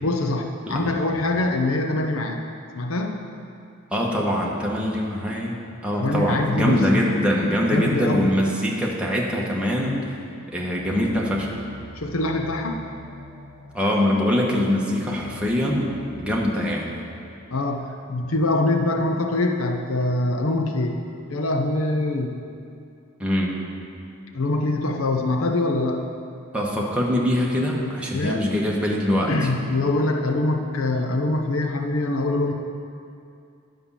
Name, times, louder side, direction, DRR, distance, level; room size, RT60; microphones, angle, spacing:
voice 1, 0.0-2.4 2.7-3.2 6.0-7.0 7.7-8.3 12.0-12.8 17.5-21.0 21.3-22.4 24.3-26.0 28.1-28.4 29.3-32.5, left 2 dB, 75° left, 4 dB, 0.7 m, -24 dB
voice 2, 0.7-1.0 3.9-5.5 5.8-10.2 10.5-11.5 13.7-17.0 23.2-23.6 26.5-29.5, equal, 5° right, -3 dB, 1.3 m, -23 dB
sound 1, 10.7-16.3, equal, 30° left, 1.5 m, -44 dB
10.5 x 5.4 x 7.3 m, 2.5 s
head